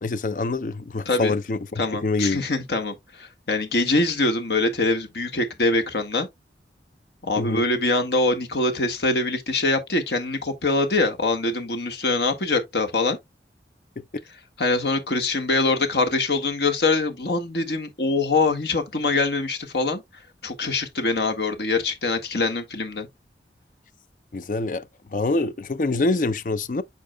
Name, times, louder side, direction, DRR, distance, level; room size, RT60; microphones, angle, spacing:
voice 1, 0.0-2.4 7.4-7.7 24.3-24.8 25.1-26.8, left 3 dB, 45° left, 0.5 m, -25 dB
voice 2, 1.0-1.4 1.8-6.3 7.2-13.2 14.6-20.0 20.4-23.1, left 2 dB, 70° left, 1.6 m, -24 dB
8.5 x 5.5 x 2.3 m
head